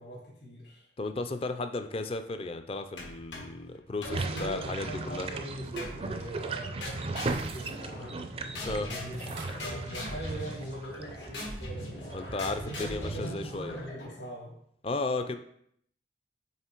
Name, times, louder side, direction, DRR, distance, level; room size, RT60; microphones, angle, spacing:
voice 1, 0.0-0.9 4.0-8.3 8.7-12.1 12.5-14.5, right 1 dB, 65° left, -3 dB, 2.1 m, -42 dB
voice 2, 1.0-5.3 8.6-8.9 12.1-13.8 14.8-15.4, left 3 dB, 30° left, 9 dB, 0.4 m, -34 dB
sound 1, 3.0-3.6 4.0-5.2 5.8-6.3 6.8-8.3 8.5-14.2, left 1 dB, 85° left, 1.8 m, -40 dB
sound 2, 4.1-13.9, right 3 dB, 30° right, 0.4 m, -38 dB
sound 3, 7.1-7.8 9.1-10.7 11.2-11.3, right 5 dB, 90° right, 0.9 m, -49 dB
5.7 x 3.7 x 4.5 m, 0.69 s
head